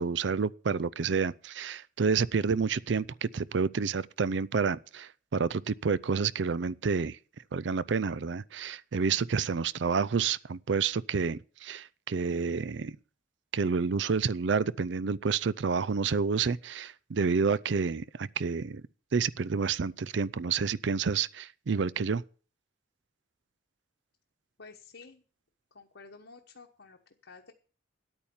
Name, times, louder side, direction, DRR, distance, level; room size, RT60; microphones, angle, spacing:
voice 1, 0.0-7.2 7.5-13.0 13.5-18.8 19.1-22.2, right 5 dB, 70° right, 0.5 m, -29 dB
voice 2, 24.6-25.2 25.7-27.5, left 4 dB, 70° left, 1.2 m, -51 dB
10.5 x 9.0 x 7.2 m
head